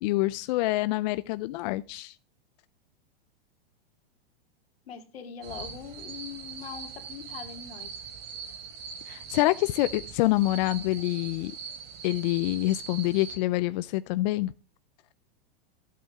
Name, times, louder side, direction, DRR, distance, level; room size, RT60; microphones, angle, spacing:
voice 1, 0.0-2.1 9.1-11.5 12.0-14.5, left 18 dB, 45° left, 0.5 m, -26 dB
voice 2, 4.9-7.9, left 7 dB, 85° left, 2.2 m, -42 dB
sound 1, 5.4-13.4, right 6 dB, 55° right, 3.1 m, -41 dB
14.0 x 8.5 x 3.5 m
hypercardioid pair, 140°, 30 cm